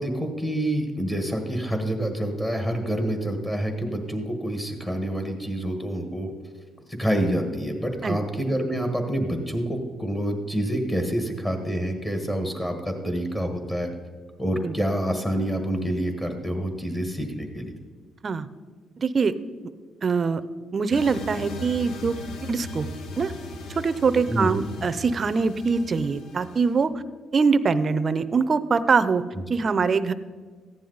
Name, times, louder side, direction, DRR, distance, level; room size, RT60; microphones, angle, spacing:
voice 1, 0.0-6.3 6.9-13.9 14.4-17.7 24.3-24.5 29.3-29.4, right 1 dB, 20° left, 5 dB, 1.5 m, -27 dB
voice 2, 19.0-19.3 20.0-20.4 20.7-22.1 22.4-22.9 23.2-23.3 23.8-26.9 27.3-29.2 29.5-30.1, right 5 dB, 40° right, 13 dB, 0.6 m, -23 dB
sound 1, 20.9-26.9, left 2 dB, 85° left, 0.9 m, -39 dB
14.5 x 10.0 x 4.0 m, 1.5 s
cardioid pair, 90°, 0 cm